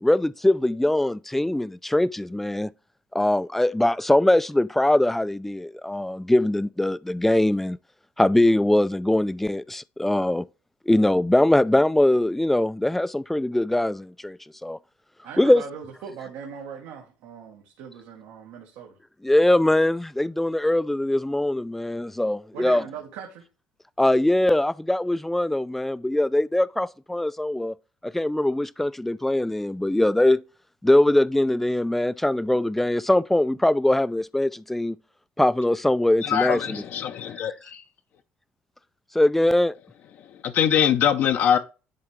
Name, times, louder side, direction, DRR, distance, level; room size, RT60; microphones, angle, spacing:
voice 1, 0.0-2.7 3.1-7.8 8.2-10.5 10.9-14.8 15.4-15.6 19.2-22.8 24.0-27.7 28.0-30.4 30.8-35.0 35.4-36.8 39.1-39.7, left 1 dB, 5° left, 0.3 m, -22 dB
voice 2, 15.2-19.0 22.5-23.5, right 7 dB, 85° right, 1.5 m, -39 dB
voice 3, 36.2-37.8 40.4-41.6, left 9 dB, 60° left, 0.6 m, -22 dB
10.5 x 3.5 x 3.2 m
cardioid pair, 115°, 4 cm